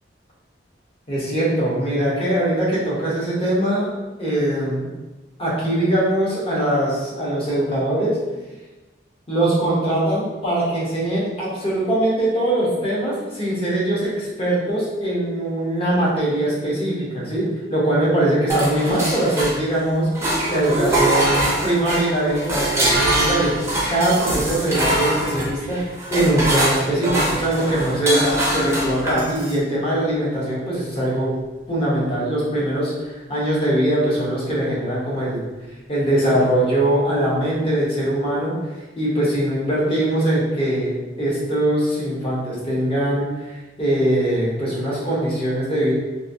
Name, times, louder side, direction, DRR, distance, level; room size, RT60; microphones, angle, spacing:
voice 1, 1.1-3.9 4.2-4.9 5.4-8.2 9.3-20.1 20.5-23.5 23.9-25.8 26.1-31.3 31.7-35.4 35.9-38.5 39.0-45.9, right 1 dB, 30° left, -7 dB, 0.9 m, -21 dB
sound 1, 18.5-19.8 20.1-29.6, right 1 dB, 15° right, 0.5 m, -23 dB
2.9 x 2.6 x 2.6 m, 1.1 s
head